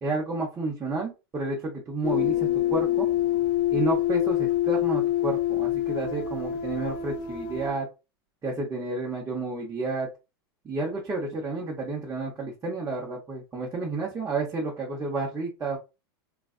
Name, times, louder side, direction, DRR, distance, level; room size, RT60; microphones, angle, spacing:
voice 1, 0.0-3.1 3.7-7.9 8.4-10.1 10.6-15.8, right 3 dB, 20° right, -3 dB, 1.0 m, -31 dB
sound 1, 2.0-7.7, left 12 dB, 55° left, 1.0 m, -26 dB
3.2 x 2.4 x 2.4 m, 0.27 s
hypercardioid pair, 110°, 13 cm